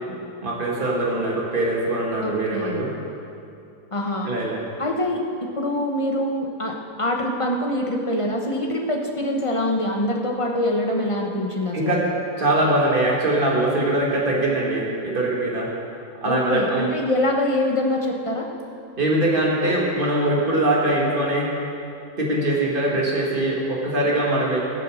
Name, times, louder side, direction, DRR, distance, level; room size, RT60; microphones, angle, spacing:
voice 1, 0.1-2.9 4.2-4.7 11.7-12.0 12.4-15.7 16.2-16.9 19.0-21.5 22.2-24.6, right 1 dB, 30° right, -3 dB, 2.2 m, -22 dB
voice 2, 2.2-2.8 3.9-4.3 4.8-12.0 16.2-18.5, left 1 dB, 20° left, 0 dB, 1.0 m, -24 dB
16.5 x 6.9 x 6.4 m, 2.7 s
omnidirectional pair, 1.8 m